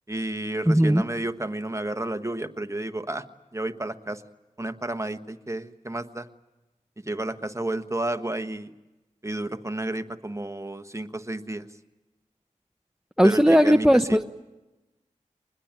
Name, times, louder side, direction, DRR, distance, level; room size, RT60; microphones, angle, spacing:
voice 1, 0.1-3.2 3.5-4.2 4.6-6.3 7.0-8.7 9.2-11.7 13.2-14.2, right 1 dB, 20° right, 9 dB, 1.3 m, -31 dB
voice 2, 0.7-1.0 13.2-14.2, equal, 5° right, 7 dB, 0.9 m, -18 dB
24.0 x 21.0 x 9.1 m, 1.0 s
cardioid pair, 40°, 13 cm